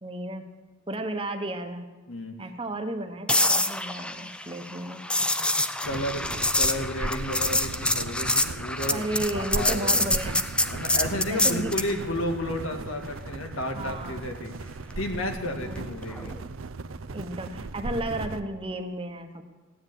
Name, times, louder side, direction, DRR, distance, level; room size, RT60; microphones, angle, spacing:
voice 1, 0.0-0.5 0.9-1.9 2.4-5.0 8.9-10.4 11.3-11.7 13.7-14.2 15.6-15.8 17.1-19.4, right 1 dB, 25° right, 6 dB, 1.1 m, -33 dB
sound 1, 3.3-11.9 16.1-16.4, left 1 dB, 5° left, 0.5 m, -26 dB
voice 2, 5.8-9.0 9.3-10.2 10.7-14.5 15.0-16.4, left 1 dB, 80° left, 4 dB, 2.0 m, -32 dB
sound 2, 5.8-18.4, right 3 dB, 85° right, 0.7 m, -37 dB
15.5 x 10.0 x 8.3 m, 1.2 s
head